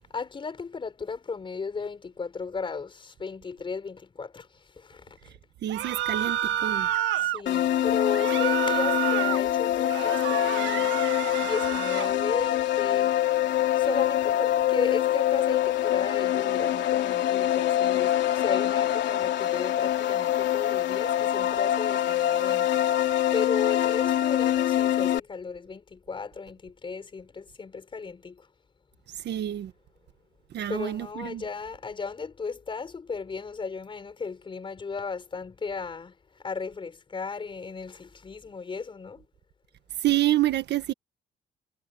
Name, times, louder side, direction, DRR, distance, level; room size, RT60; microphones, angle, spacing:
voice 1, 0.1-5.3 6.7-6.8 7.2-13.2 13.8-22.9 23.3-28.5 30.7-39.2, left 5 dB, 25° left, 5.0 m, -35 dB
voice 2, 5.6-6.9 29.2-29.7 30.5-31.4 40.0-40.9, right 14 dB, 60° right, 1.5 m, -27 dB
sound 1, 5.7-7.4 8.1-9.4 9.8-12.1, right 11 dB, 80° right, 1.8 m, -29 dB
sound 2, 7.5-25.2, left 12 dB, 65° left, 3.4 m, -25 dB
cardioid pair, 155°, 20 cm